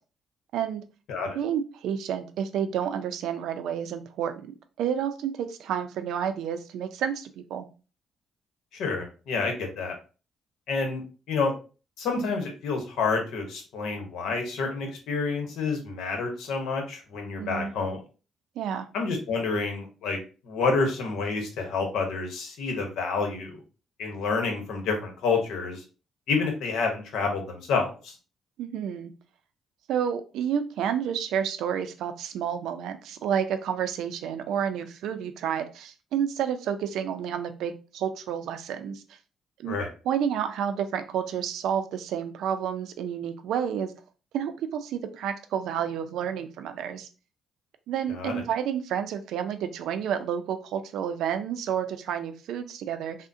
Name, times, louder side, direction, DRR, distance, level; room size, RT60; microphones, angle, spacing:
voice 1, 0.5-0.8 1.3-7.7 17.4-17.7 18.6-18.9 28.6-29.1 29.9-39.0 39.6-39.8 40.0-43.9 44.3-47.1 47.9-53.2, right 8 dB, 85° right, 8 dB, 0.4 m, -30 dB
voice 2, 8.7-9.9 10.7-11.0 11.3-11.5 12.0-18.0 18.9-20.2 20.4-23.6 24.0-25.8 26.3-28.1 39.6-39.9 48.1-48.4, left 4 dB, 85° left, 3 dB, 0.9 m, -28 dB
3.6 x 2.1 x 2.6 m, 0.34 s
cardioid pair, 90°, 0 cm